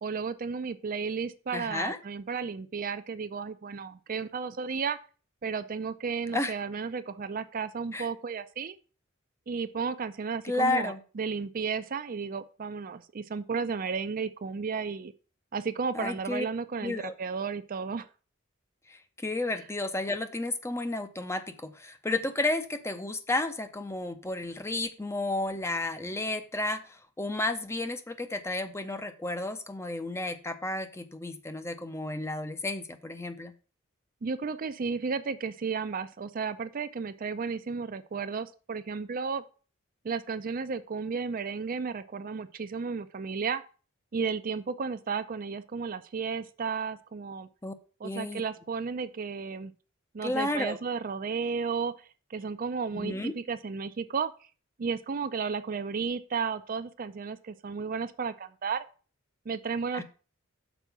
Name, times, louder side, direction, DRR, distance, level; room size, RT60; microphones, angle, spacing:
voice 1, 0.0-5.0 5.4-8.8 9.5-15.1 15.5-18.1 34.2-39.4 40.0-43.6 44.1-47.5 48.0-49.7 50.1-52.0 52.3-54.3 54.8-58.8 59.5-60.0, right 5 dB, 40° right, 12 dB, 0.4 m, -33 dB
voice 2, 1.5-2.0 6.3-6.5 7.9-8.1 10.4-11.0 15.9-16.4 16.8-17.1 18.9-33.5 47.6-47.7 48.0-48.4 50.2-50.8 52.9-53.3 59.9-60.0, left 2 dB, 15° left, 9 dB, 0.6 m, -32 dB
6.1 x 4.6 x 6.6 m, 0.37 s
head